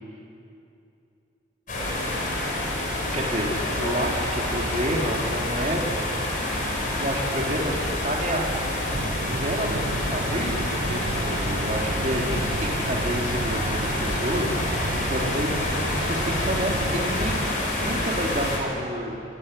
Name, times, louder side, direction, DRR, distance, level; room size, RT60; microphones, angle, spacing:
sound 1, 1.7-18.6, left 1 dB, 45° left, 5.9 m, -28 dB
voice 1, 3.1-5.8 7.0-7.7 8.0-8.5 9.3-14.6 15.1-17.4 17.8-19.2, right 1 dB, 40° right, -1 dB, 3.5 m, -29 dB
sound 2, 8.9-17.5, right 2 dB, 60° right, 1.0 m, -32 dB
29.5 x 19.0 x 10.0 m, 2.6 s
head